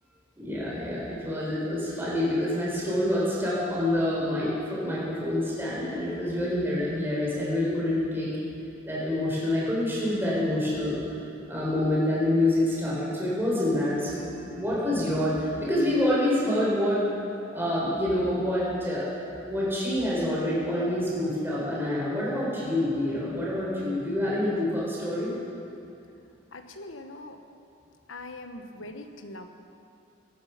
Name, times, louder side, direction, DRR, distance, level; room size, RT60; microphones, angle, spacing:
voice 1, 0.4-8.3 8.8-11.0 11.5-17.0 17.5-19.1 19.5-25.3, left 1 dB, 10° right, -7 dB, 4.1 m, -27 dB
voice 2, 26.5-27.4 28.1-29.5, left 2 dB, 90° left, 7 dB, 1.1 m, -42 dB
16.5 x 11.5 x 5.8 m, 2.6 s
head